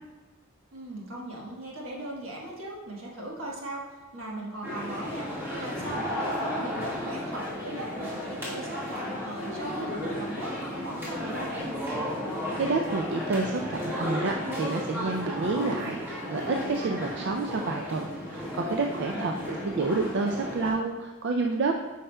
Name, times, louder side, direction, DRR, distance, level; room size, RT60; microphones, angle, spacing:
voice 1, 0.7-3.9 4.1-5.3 5.6-11.7 19.1-19.7, right 1 dB, 75° right, -3 dB, 1.4 m, -38 dB
sound 1, 4.6-20.7, left 1 dB, 10° right, 1.3 m, -34 dB
voice 2, 12.6-21.8, right 3 dB, 60° right, 2 dB, 0.4 m, -29 dB
8.5 x 4.9 x 2.2 m, 1.3 s
head